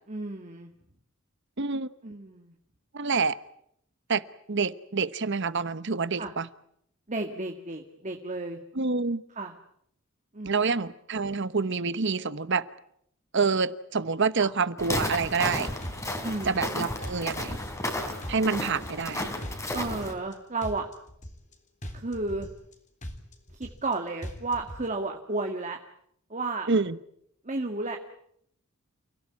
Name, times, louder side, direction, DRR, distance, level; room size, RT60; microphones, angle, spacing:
voice 1, 0.1-0.7 2.0-2.5 6.2-6.3 7.1-8.6 9.4-9.5 10.3-10.7 14.4-14.5 16.2-16.6 19.7-20.9 21.9-22.5 23.5-25.8 26.3-26.7 27.4-28.0, right 3 dB, 35° right, 2.0 m, -32 dB
voice 2, 1.6-1.9 2.9-3.4 4.1-6.5 8.7-9.2 10.4-12.7 13.3-15.7 16.5-17.6 18.3-19.3 26.7-27.0, right 4 dB, 60° right, 1.1 m, -27 dB
Walk footsteps, 14.8-20.1, left 1 dB, 15° left, 3.6 m, -33 dB
sound 1, 15.2-15.5 15.8-16.7 17.0-17.9 18.2-19.1 19.4-20.3 20.6-21.5 21.8-22.7 23.0-23.9 24.2-24.8, equal, 35° left, 3.5 m, -40 dB
30.0 x 17.0 x 9.6 m
head